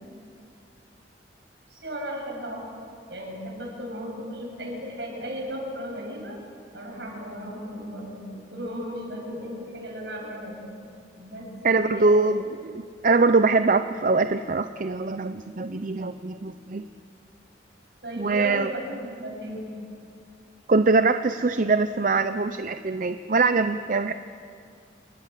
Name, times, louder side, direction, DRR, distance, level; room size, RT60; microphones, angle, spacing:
voice 1, 1.7-2.6 3.1-6.3 6.7-10.6 11.2-11.5 11.8-12.2 18.0-19.7, equal, 70° right, 0 dB, 7.6 m, -35 dB
voice 2, 11.6-16.9 18.2-18.7 20.7-24.1, right 3 dB, 45° right, 10 dB, 0.6 m, -23 dB
28.0 x 21.0 x 7.5 m, 2.4 s
head